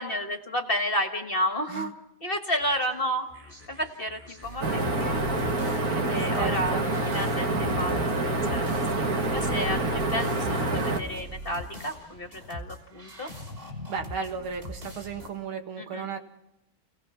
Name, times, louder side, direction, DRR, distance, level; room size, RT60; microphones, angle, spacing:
voice 1, 0.0-1.9 2.2-3.2 3.7-5.2 6.1-8.6 8.9-13.3 15.8-16.1, equal, 30° left, 6 dB, 1.3 m, -31 dB
sound 1, 2.6-15.3, equal, 25° right, 5.3 m, -42 dB
sound 2, 4.6-11.0, right 2 dB, 45° right, 1.8 m, -27 dB
voice 2, 5.9-6.9 13.9-16.2, right 6 dB, 85° right, 5 dB, 2.6 m, -35 dB
30.0 x 18.0 x 5.9 m, 0.86 s
omnidirectional pair, 2.3 m